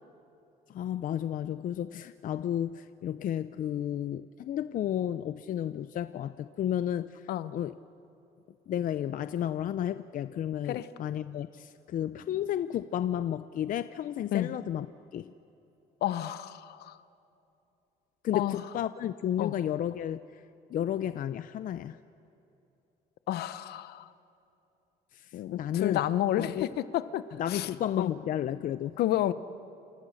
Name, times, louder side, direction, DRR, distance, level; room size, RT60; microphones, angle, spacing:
voice 1, 0.7-7.8 8.7-14.9 15.1-15.3 18.2-20.2 20.7-22.0 25.1-25.3 25.6-26.1 26.4-26.7 27.3-29.0, left 10 dB, 55° left, 13 dB, 0.6 m, -32 dB
voice 2, 16.0-17.0 18.3-18.6 19.4-19.6 23.3-24.0 25.3-26.7 26.9-27.7 28.0-28.1 29.0-29.3, left 13 dB, 70° left, 14 dB, 1.0 m, -30 dB
29.0 x 27.5 x 6.5 m, 2.9 s
cardioid pair, 110°, 17 cm